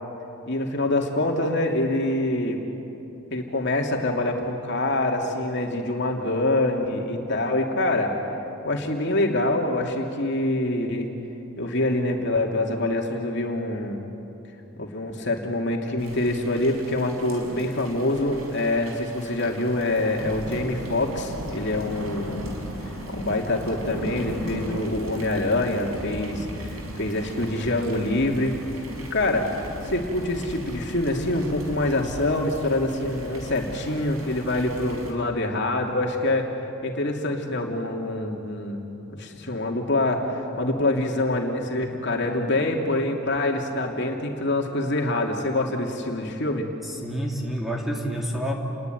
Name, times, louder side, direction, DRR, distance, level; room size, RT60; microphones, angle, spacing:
voice 1, 0.5-2.6 3.3-8.1 8.6-11.1 11.6-14.0 14.8-22.5 23.1-28.6 29.1-29.5 29.8-36.5 36.8-38.8 39.2-46.7, left 2 dB, 55° left, 1 dB, 2.9 m, -25 dB
Thunder / Rain, 16.0-35.1, equal, 80° right, 5.1 m, -37 dB
voice 2, 46.8-48.5, equal, ahead, -1 dB, 2.8 m, -28 dB
30.0 x 21.0 x 9.4 m, 3.0 s
head